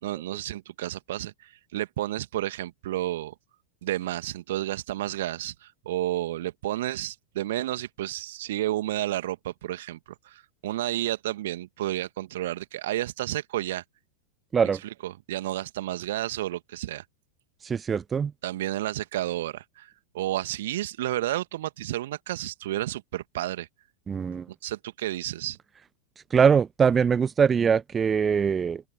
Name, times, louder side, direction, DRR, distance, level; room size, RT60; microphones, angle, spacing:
voice 1, 0.0-3.3 3.8-10.0 10.3-13.8 14.8-17.0 18.4-23.7 24.6-25.6, right 14 dB, 55° right, 2.1 m, -31 dB
voice 2, 17.6-18.3 24.1-24.4 26.3-28.8, right 6 dB, 20° right, 0.8 m, -22 dB
open air
figure-of-eight pair, 90°, 0 cm